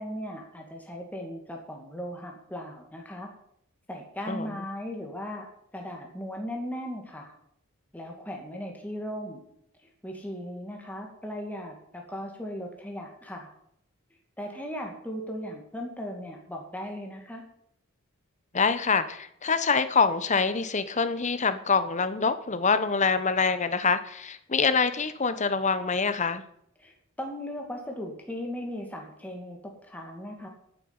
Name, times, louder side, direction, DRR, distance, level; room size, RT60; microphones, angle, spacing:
voice 1, 0.0-3.3 3.9-5.4 5.7-7.3 7.9-9.4 9.8-13.5 14.4-17.4 26.8-30.5, equal, 10° left, 0 dB, 2.2 m, -37 dB
voice 2, 4.3-4.6 18.5-26.4, left 5 dB, 35° left, 12 dB, 1.0 m, -25 dB
9.9 x 9.0 x 8.9 m, 0.72 s
head